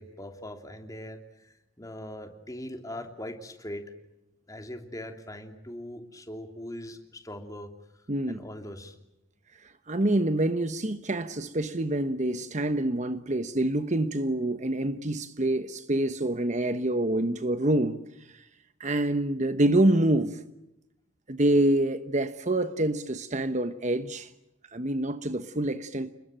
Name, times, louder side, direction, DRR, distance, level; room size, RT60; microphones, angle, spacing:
voice 1, 0.0-3.8 4.5-7.7 8.3-9.0, left 1 dB, 15° left, 3.0 m, -41 dB
voice 2, 8.1-8.4 9.6-18.0 18.3-18.4 18.8-20.4 21.3-24.3 24.7-26.1, right 1 dB, 35° right, 1.1 m, -26 dB
30.0 x 21.0 x 9.1 m
head